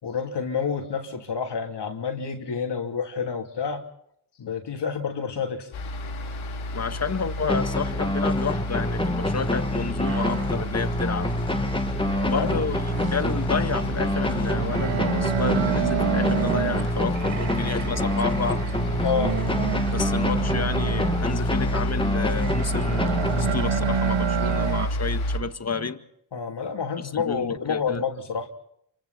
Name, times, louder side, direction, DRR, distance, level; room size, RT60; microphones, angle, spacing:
voice 1, 0.0-3.8 4.4-5.7 12.0-12.6 19.0-19.4 26.3-28.5, left 6 dB, 60° left, 3.1 m, -29 dB
sound 1, 5.7-25.4, left 1 dB, 80° left, 3.8 m, -30 dB
voice 2, 6.7-11.3 12.2-12.8 13.1-18.7 19.9-26.0 27.1-28.0, left 5 dB, 35° left, 1.8 m, -30 dB
sound 2, 7.5-24.0, left 1 dB, 10° left, 2.0 m, -27 dB
sound 3, 10.0-24.9, right 10 dB, 70° right, 0.9 m, -31 dB
27.5 x 25.5 x 4.2 m
supercardioid pair, 55°, 47 cm